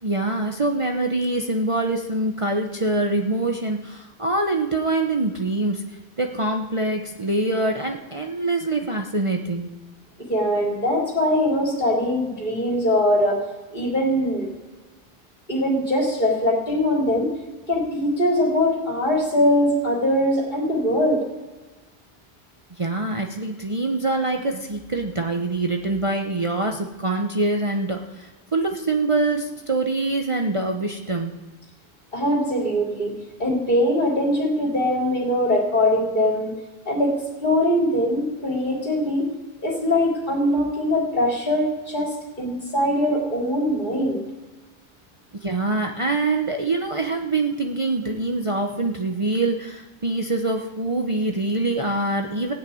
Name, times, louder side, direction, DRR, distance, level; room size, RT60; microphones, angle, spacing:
voice 1, 0.0-5.8 6.2-9.7 22.8-31.3 45.4-52.5, right 2 dB, 30° right, 2 dB, 1.0 m, -24 dB
voice 2, 10.3-13.4 13.7-14.5 15.5-17.3 17.7-21.3 32.1-33.1 33.4-36.5 36.9-37.1 37.4-39.2 39.6-44.2, left 1 dB, 50° left, -3 dB, 3.5 m, -22 dB
15.5 x 6.6 x 9.4 m, 1.2 s
omnidirectional pair, 1.0 m